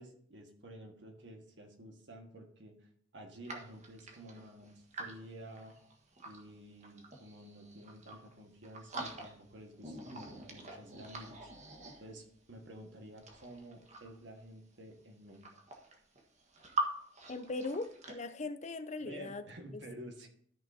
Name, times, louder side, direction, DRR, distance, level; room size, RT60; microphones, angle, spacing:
voice 1, 0.0-5.7 6.2-11.5 12.0-15.5 19.0-20.3, right 1 dB, 65° right, 3 dB, 1.7 m, -51 dB
sound 1, 3.4-6.4 6.8-8.3 8.6-9.5 9.8-12.4 13.0-14.3 15.0-15.1 15.3-16.9 17.1-18.1, right 2 dB, 40° right, 1.5 m, -44 dB
voice 2, 17.3-19.4 19.7-19.8, left 3 dB, 40° left, 10 dB, 0.6 m, -39 dB
13.5 x 6.1 x 2.8 m, 0.63 s
head